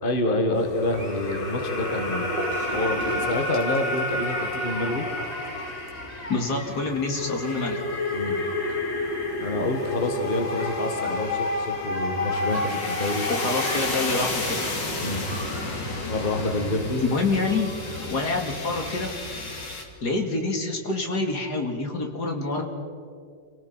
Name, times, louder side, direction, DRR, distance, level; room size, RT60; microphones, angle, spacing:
voice 1, 0.0-2.4 2.7-5.1 8.1-8.4 9.4-13.3 15.0-15.3 16.1-17.1, left 1 dB, 30° left, 5 dB, 1.8 m, -27 dB
sound 1, 0.5-19.8, left 2 dB, 90° left, 3.1 m, -30 dB
sound 2, 0.9-19.7, equal, 5° right, 6.3 m, -43 dB
Gurgling / Toilet flush, 2.4-6.3, right 1 dB, 25° right, 2.7 m, -39 dB
voice 2, 6.3-7.8 13.3-14.6 17.0-17.7 18.0-19.1 20.0-22.6, left 3 dB, 65° left, 3 dB, 2.9 m, -27 dB
28.5 x 18.5 x 5.6 m, 2.3 s
omnidirectional pair, 1.9 m